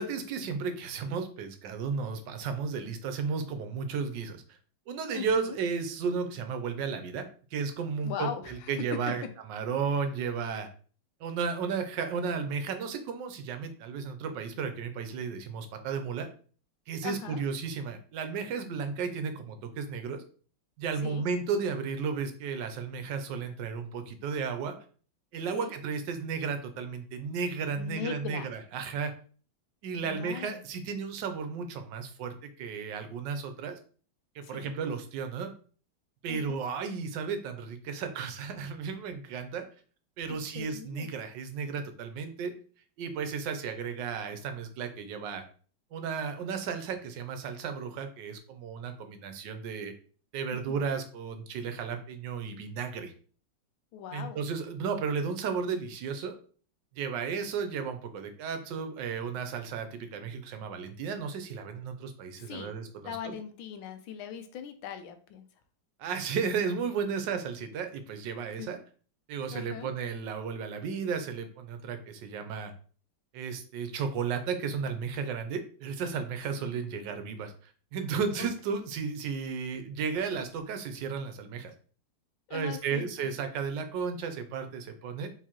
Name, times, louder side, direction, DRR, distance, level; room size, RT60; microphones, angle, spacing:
voice 1, 0.0-4.4 4.9-7.3 7.5-9.2 9.5-10.7 11.2-16.3 16.9-20.2 20.8-24.8 25.3-29.1 29.8-33.8 34.3-35.5 36.2-39.6 40.2-42.5 43.0-45.4 45.9-49.9 50.3-53.1 54.1-56.4 57.0-63.3 66.0-68.8 69.3-72.7 73.3-81.7 82.5-85.3, right 5 dB, 75° right, 7 dB, 1.2 m, -34 dB
voice 2, 5.1-5.6 8.0-8.7 17.0-17.4 21.0-21.2 25.5-25.7 27.8-28.5 30.0-30.6 34.4-34.7 36.3-36.6 40.3-41.1 53.9-54.4 62.4-62.7 63.0-65.5 68.6-68.7 69.5-69.9 76.6-76.7 82.5-83.3, left 8 dB, 85° left, 9 dB, 1.5 m, -40 dB
4.7 x 3.7 x 2.9 m, 0.42 s
omnidirectional pair, 2.2 m